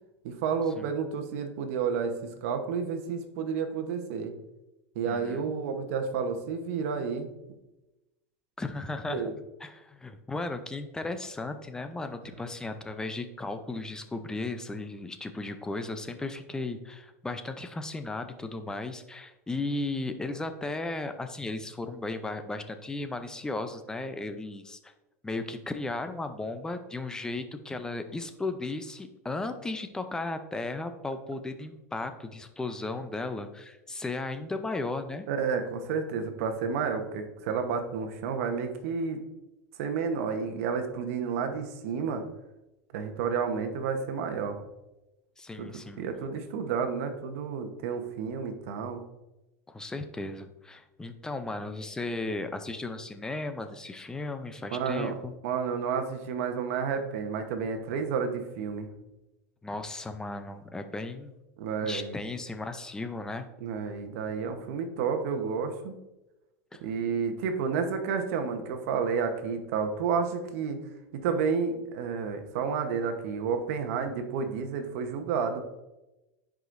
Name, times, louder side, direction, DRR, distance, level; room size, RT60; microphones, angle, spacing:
voice 1, 0.2-4.3 4.9-7.3 9.1-9.3 35.3-39.2 39.8-42.2 42.9-44.6 45.6-49.0 54.7-55.2 55.4-58.9 61.6-62.2 63.6-65.9 66.8-70.8 71.1-75.6, right 6 dB, 65° right, 6 dB, 1.0 m, -31 dB
voice 2, 5.1-5.5 8.6-9.2 9.6-24.9 25.2-35.3 45.4-46.0 49.7-55.3 59.6-61.4 61.8-63.5 66.7-66.8, left 2 dB, 10° left, 8 dB, 0.5 m, -35 dB
10.5 x 5.0 x 2.6 m, 1.0 s
supercardioid pair, 135°, 8 cm